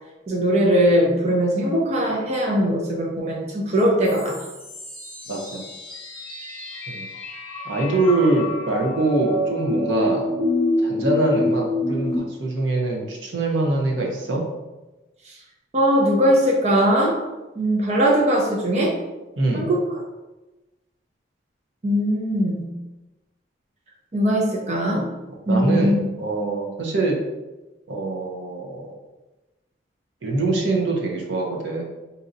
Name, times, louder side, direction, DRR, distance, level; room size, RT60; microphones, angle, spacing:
voice 1, 0.3-4.4 15.2-15.4 15.7-17.2 17.6-19.0 19.5-19.8 21.8-22.7 24.1-25.1 25.5-26.0, equal, 35° right, -2 dB, 0.5 m, -20 dB
sound 1, 4.0-12.2, left 1 dB, 15° left, 0.9 m, -27 dB
voice 2, 5.3-5.7 6.9-7.1 7.7-10.3 10.8-14.4 19.4-19.7 25.4-27.2 27.9-28.9 30.2-31.8, right 2 dB, 80° right, 0 dB, 0.7 m, -23 dB
4.2 x 2.7 x 2.5 m, 1.1 s
head